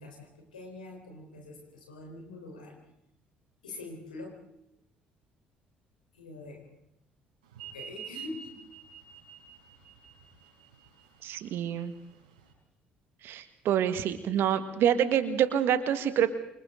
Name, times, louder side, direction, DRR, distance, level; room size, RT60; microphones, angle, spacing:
voice 1, 0.0-2.8 3.6-4.3 6.1-6.7 7.6-8.6, left 2 dB, 80° left, 1 dB, 4.3 m, -44 dB
sound 1, 7.5-12.5, right 8 dB, 75° right, 5.7 m, -47 dB
voice 2, 11.2-11.9 13.2-16.3, right 9 dB, 55° right, 11 dB, 1.8 m, -27 dB
28.5 x 25.5 x 3.9 m, 0.81 s
figure-of-eight pair, 50°, 4 cm